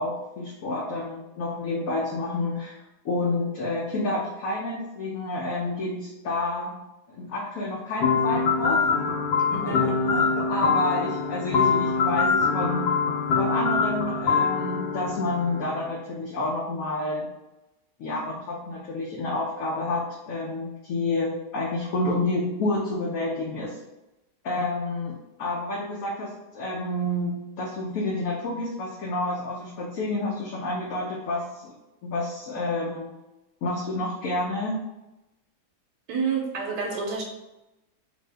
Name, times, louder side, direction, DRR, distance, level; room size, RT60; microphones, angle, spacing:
voice 1, 0.0-2.8 3.0-6.8 7.1-8.9 9.6-12.9 13.4-17.3 18.0-23.8 24.4-31.8 32.0-33.1 33.6-34.8, left 2 dB, 70° left, -2 dB, 0.9 m, -29 dB
sound 1, 8.0-15.9, left 5 dB, 85° left, 1.2 m, -24 dB
voice 2, 9.5-9.9 36.1-37.2, right 5 dB, 80° right, -1 dB, 1.2 m, -29 dB
2.7 x 2.6 x 3.2 m, 0.97 s
omnidirectional pair, 1.8 m